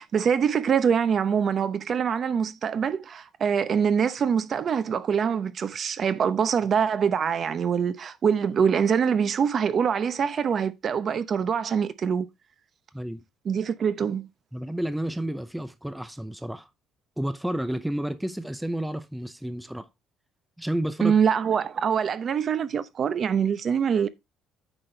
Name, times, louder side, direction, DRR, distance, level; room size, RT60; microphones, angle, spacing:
voice 1, 0.0-12.3 13.4-14.3 21.0-24.1, right 7 dB, 40° right, 0.7 m, -24 dB
voice 2, 14.5-16.7 17.2-19.9 20.6-21.2, right 1 dB, 5° right, 0.6 m, -31 dB
9.0 x 6.0 x 3.3 m
cardioid pair, 145°, 0 cm